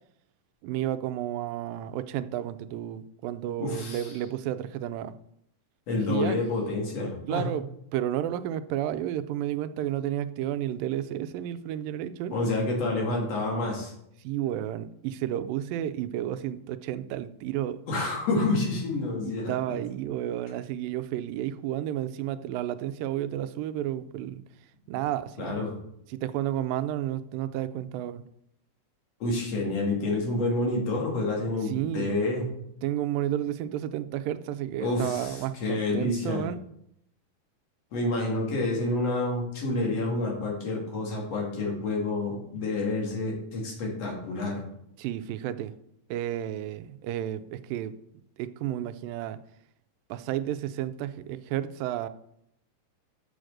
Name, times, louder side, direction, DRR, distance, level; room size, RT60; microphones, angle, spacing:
voice 1, 0.6-5.1 5.9-6.4 7.3-7.7 7.9-12.3 14.2-17.8 19.2-24.4 24.9-25.7 26.1-28.2 31.7-32.1 32.8-36.6 45.0-45.7 46.1-47.9 48.4-49.4 50.1-52.1, right 12 dB, 85° right, 13 dB, 2.3 m, -31 dB
voice 2, 3.6-4.1 5.9-7.5 12.3-13.9 17.9-19.8 25.4-25.7 29.2-32.5 34.8-36.4 37.9-44.6, left 2 dB, 50° left, -1 dB, 3.0 m, -28 dB
7.0 x 6.5 x 6.3 m, 0.75 s
omnidirectional pair, 3.9 m